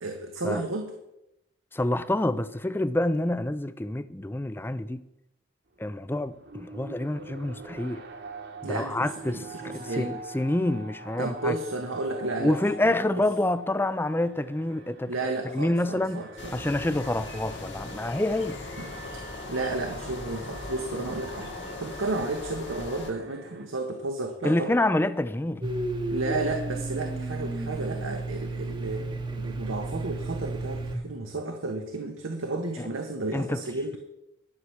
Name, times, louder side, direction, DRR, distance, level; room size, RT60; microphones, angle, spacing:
voice 1, 0.0-0.9 8.6-10.1 11.2-12.6 12.8-12.9 15.1-16.5 18.8-18.9 19.1-19.2 19.5-21.5 21.8-24.7 26.1-29.1 29.4-34.0, right 2 dB, 80° right, 1.2 m, -32 dB
voice 2, 1.7-5.0 5.8-8.1 8.6-11.6 12.4-15.1 15.5-16.3 16.5-18.6 24.4-25.6 32.8-32.9 33.3-33.6, left 1 dB, 10° left, 0.4 m, -27 dB
Alarm, 5.7-23.7, right 2 dB, 55° right, 1.3 m, -45 dB
sound 1, 16.4-23.1, left 2 dB, 60° left, 1.9 m, -39 dB
Domestic sounds home sounds, 25.6-31.0, right 2 dB, 25° right, 0.9 m, -32 dB
11.0 x 5.9 x 7.9 m
head